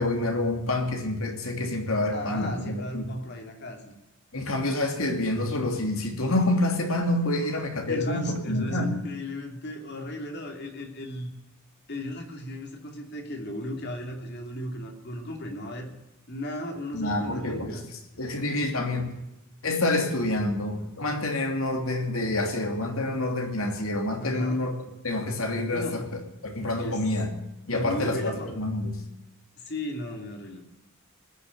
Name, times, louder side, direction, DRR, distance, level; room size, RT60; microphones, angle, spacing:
voice 1, 0.0-3.1 4.3-9.0 16.9-17.8 18.2-19.1 19.6-27.3 27.7-29.0, left 2 dB, 75° left, 4 dB, 2.9 m, -27 dB
voice 2, 2.1-3.9 7.4-11.3 11.9-15.9 16.3-17.8 24.2-24.6 25.7-26.1 26.7-27.0 27.7-28.6 29.6-30.6, equal, 50° left, 3 dB, 2.9 m, -35 dB
20.0 x 7.1 x 9.4 m, 0.93 s
head